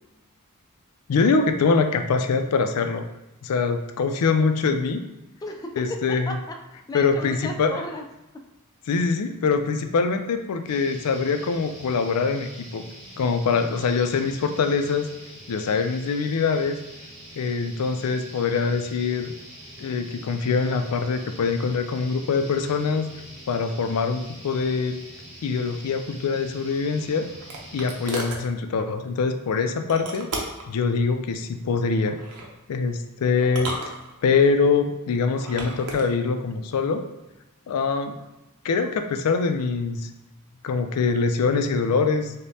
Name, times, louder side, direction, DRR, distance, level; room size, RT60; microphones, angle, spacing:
voice 1, 1.1-3.0 3.4-5.0 5.8-6.4 6.9-7.7 8.9-12.8 13.2-15.1 15.5-16.8 17.4-19.3 19.8-23.1 23.5-25.0 25.4-27.3 27.7-30.3 30.7-32.2 32.7-33.8 34.2-37.0 37.7-38.2 38.6-40.1 40.6-42.3, left 5 dB, 90° left, 8 dB, 0.4 m, -23 dB
voice 2, 5.4-5.7 6.3-8.0, left 1 dB, 15° left, 2 dB, 0.3 m, -35 dB
sound 1, 10.6-28.2, equal, 60° right, 1.5 m, -44 dB
sound 2, 26.7-28.5 29.9-30.7 32.1-32.5 33.4-34.5 35.3-36.1, right 2 dB, 80° right, 0.7 m, -34 dB
5.0 x 2.1 x 2.7 m, 0.99 s
head